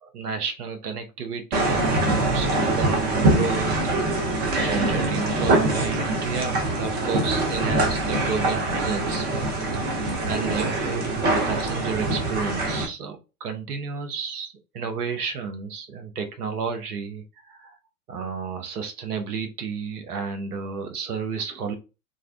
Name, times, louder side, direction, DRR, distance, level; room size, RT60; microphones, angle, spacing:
voice 1, 0.0-9.3 9.8-9.9 10.3-17.7 18.1-21.7, right 6 dB, 80° right, 0.7 m, -32 dB
sound 1, 1.5-12.8, right 2 dB, 20° right, 0.5 m, -24 dB
2.4 x 2.1 x 2.4 m
hypercardioid pair, 95°, 45 cm